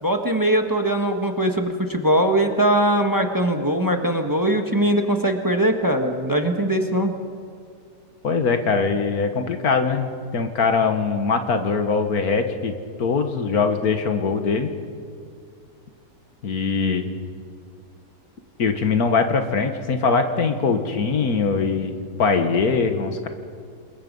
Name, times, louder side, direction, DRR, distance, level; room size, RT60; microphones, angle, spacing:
voice 1, 0.0-7.1, right 1 dB, 15° right, 4 dB, 1.4 m, -21 dB
voice 2, 8.2-14.7 16.4-17.1 18.6-23.3, left 5 dB, 75° left, 7 dB, 1.9 m, -22 dB
28.0 x 21.0 x 5.5 m, 2.2 s
omnidirectional pair, 1.6 m